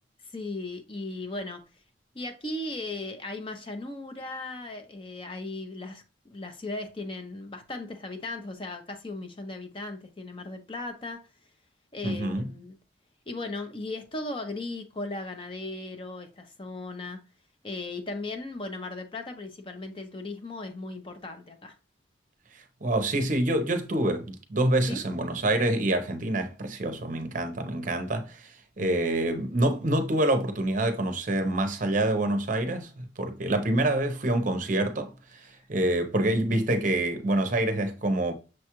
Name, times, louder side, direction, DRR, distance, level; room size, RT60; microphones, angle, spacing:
voice 1, 0.3-1.6 2.1-11.2 11.9-12.8 13.3-17.2 17.6-21.8 24.9-25.0 28.8-29.1, left 2 dB, 30° left, 0.6 m, -37 dB
voice 2, 12.0-12.4 22.8-28.5 28.8-35.1 35.7-38.3, right 1 dB, 45° right, 0.6 m, -26 dB
6.3 x 2.3 x 2.9 m
head